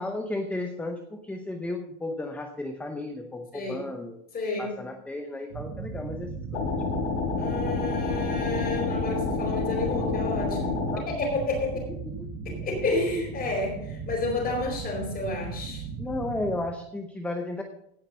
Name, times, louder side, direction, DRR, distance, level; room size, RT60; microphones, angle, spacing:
voice 1, 0.0-4.2 4.6-6.7 10.9-11.1 11.9-12.3 16.0-17.6, left 2 dB, 5° left, 5 dB, 0.7 m, -34 dB
voice 2, 4.3-4.7 7.4-10.6 11.1-11.9 12.4-15.8, left 3 dB, 25° left, 0 dB, 4.8 m, -30 dB
sound 1, 5.5-16.6, right 5 dB, 65° right, 2.2 m, -37 dB
sound 2, 6.5-11.0, left 4 dB, 75° left, 4.5 m, -29 dB
16.5 x 5.9 x 5.5 m, 0.77 s
supercardioid pair, 145°, 38 cm